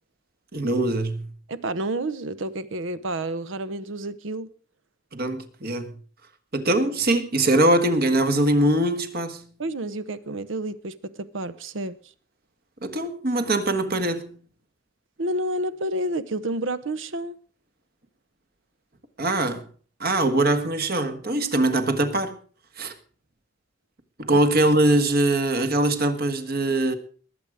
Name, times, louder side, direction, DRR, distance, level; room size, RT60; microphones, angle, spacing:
voice 1, 0.5-1.3 5.1-5.9 6.5-9.5 12.8-14.4 19.2-19.7 20.0-22.4 22.8-22.9 24.2-27.0, right 1 dB, 50° right, 1.6 m, -22 dB
voice 2, 1.5-4.5 9.6-12.0 15.2-17.4 24.3-24.4, right 1 dB, 75° right, 0.9 m, -29 dB
20.5 x 7.9 x 4.9 m
head